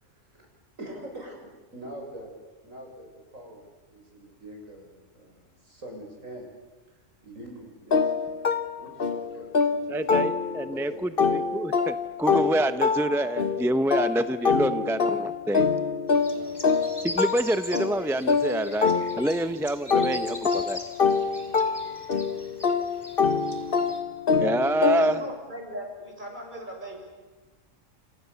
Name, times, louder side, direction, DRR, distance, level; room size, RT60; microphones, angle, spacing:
voice 1, 0.8-2.3 2.6-6.5 7.2-8.3 8.8-10.0 10.4-11.1 16.3-16.6 21.8-22.1 22.9-23.1, right 1 dB, 85° right, 1 dB, 7.1 m, -44 dB
sound 1, 7.9-10.8 11.2-19.5 19.9-25.3, left 5 dB, 45° left, 1.4 m, -25 dB
voice 2, 9.9-15.7 17.0-20.8 24.4-25.2, right 1 dB, ahead, 11 dB, 0.7 m, -27 dB
sound 2, 16.1-24.0, left 1 dB, 15° left, 3.0 m, -42 dB
voice 3, 25.0-27.0, equal, 35° right, 1 dB, 6.9 m, -38 dB
30.0 x 28.0 x 7.1 m, 1.2 s
omnidirectional pair, 1.3 m